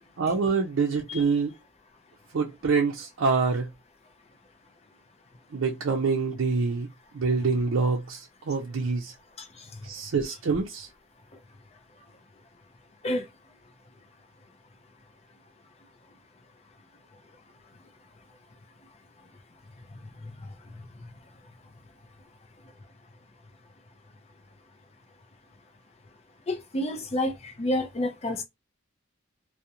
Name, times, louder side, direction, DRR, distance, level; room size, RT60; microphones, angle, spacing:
voice 1, 0.2-1.5 2.3-3.7 5.5-6.9 7.1-9.1 9.8-10.9, right 4 dB, 75° right, 0.4 m, -26 dB
voice 2, 9.4-9.8 13.0-13.3 19.9-21.1 26.5-28.4, left 1 dB, 30° left, 0.5 m, -31 dB
2.4 x 2.1 x 2.8 m
head